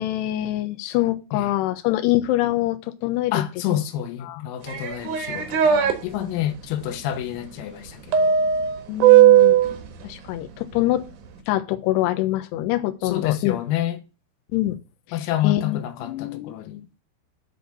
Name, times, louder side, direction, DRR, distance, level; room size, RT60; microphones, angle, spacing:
voice 1, 0.0-3.3 4.3-4.4 8.9-9.6 10.0-11.0 11.5-13.6 14.5-14.8 15.1-15.2 15.4-16.5, left 15 dB, 75° left, 2.7 m, -24 dB
voice 2, 3.3-8.4 13.0-14.0 15.1-17.0, left 11 dB, 90° left, 3.9 m, -28 dB
sound 1, 4.7-5.9 8.1-9.7, right 10 dB, 85° right, 1.8 m, -16 dB
10.5 x 4.5 x 6.8 m
omnidirectional pair, 5.9 m